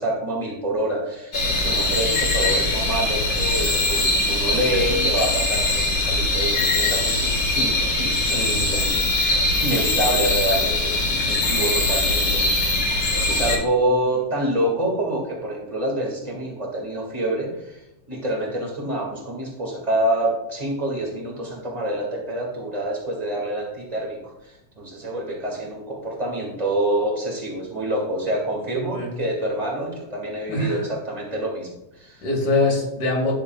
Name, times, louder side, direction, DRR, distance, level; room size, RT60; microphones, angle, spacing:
voice 1, 0.0-17.8 18.1-24.2 24.4-32.2, right 1 dB, 15° right, -3 dB, 1.4 m, -27 dB
sound 1, 1.3-13.6, left 2 dB, 40° left, 1.6 m, -22 dB
voice 2, 28.7-29.1 30.5-30.8 32.2-33.3, left 2 dB, 80° left, -1 dB, 3.4 m, -23 dB
11.0 x 7.1 x 2.3 m, 0.92 s
omnidirectional pair, 3.5 m